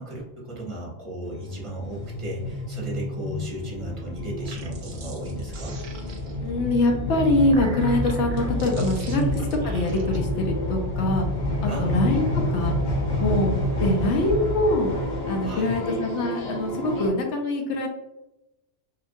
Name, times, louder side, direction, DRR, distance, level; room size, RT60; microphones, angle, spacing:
voice 1, 0.0-5.8 9.1-9.4 11.7-12.1 15.4-15.8, right 2 dB, 30° right, -3 dB, 0.8 m, -34 dB
sound 1, 1.2-17.1, left 1 dB, 50° left, 0.6 m, -29 dB
sound 2, 4.3-6.5 7.2-10.2, right 4 dB, 60° right, 0.5 m, -44 dB
voice 2, 6.4-9.2 9.6-11.3 11.8-12.8 13.2-14.9 15.3-17.9, left 2 dB, 75° left, 1 dB, 0.9 m, -24 dB
2.8 x 2.4 x 2.5 m, 0.95 s
omnidirectional pair, 1.2 m